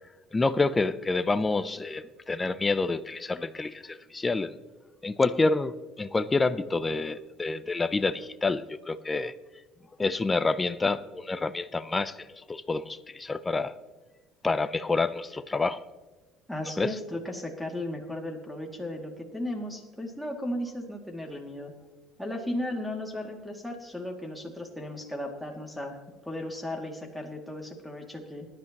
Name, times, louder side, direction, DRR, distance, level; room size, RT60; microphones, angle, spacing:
voice 1, 0.3-4.5 5.0-9.3 10.0-13.8 14.4-15.8 16.8-16.9, left 3 dB, 20° left, 13 dB, 0.6 m, -28 dB
voice 2, 16.5-21.7 22.2-26.0 26.3-28.5, left 1 dB, ahead, 0 dB, 2.4 m, -35 dB
20.5 x 11.0 x 3.0 m, 1.3 s
supercardioid pair, 90°, 0 cm